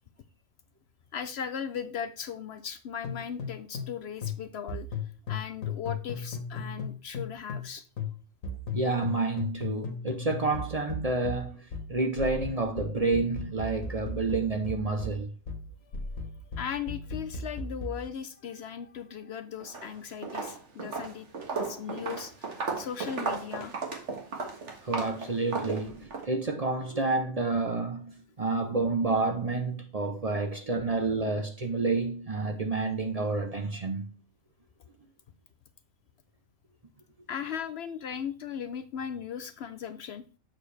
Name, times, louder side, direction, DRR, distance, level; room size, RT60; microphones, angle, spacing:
voice 1, 1.1-4.9 5.3-7.8 15.9-16.2 16.6-23.7 37.3-40.3, left 8 dB, 65° left, 0.8 m, -38 dB
sound 1, 3.0-7.7 8.0-18.0, left 4 dB, 90° left, 1.7 m, -36 dB
voice 2, 8.7-15.3 24.8-34.1, right 3 dB, 35° right, 0.7 m, -29 dB
Walk footsteps, 19.6-19.9 20.2-26.3, right 4 dB, 60° right, 1.8 m, -35 dB
7.5 x 6.6 x 3.3 m
omnidirectional pair, 1.3 m